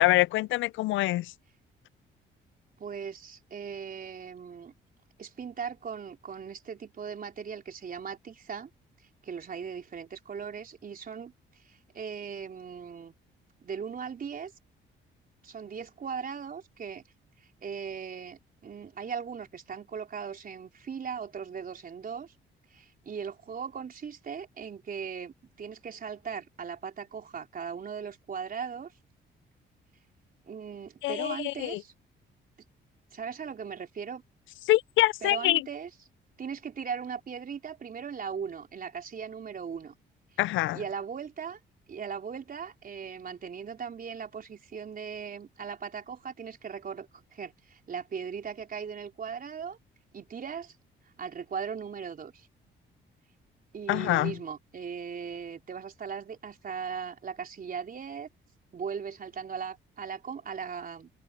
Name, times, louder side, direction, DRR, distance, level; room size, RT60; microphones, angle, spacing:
voice 1, 0.0-1.3 31.0-31.8 34.7-35.6 40.4-40.8 53.9-54.3, left 17 dB, 80° left, 0.4 m, -25 dB
voice 2, 2.8-4.7 5.2-8.7 9.2-11.3 11.7-13.1 13.6-14.5 15.4-17.0 17.6-22.3 22.7-28.9 30.5-31.9 33.1-34.2 35.2-35.9 36.4-39.9 40.7-41.6 41.9-49.8 50.1-50.7 51.2-52.5 53.7-58.3 58.7-61.1, right 6 dB, 45° right, 4.0 m, -38 dB
open air
cardioid pair, 90°, 20 cm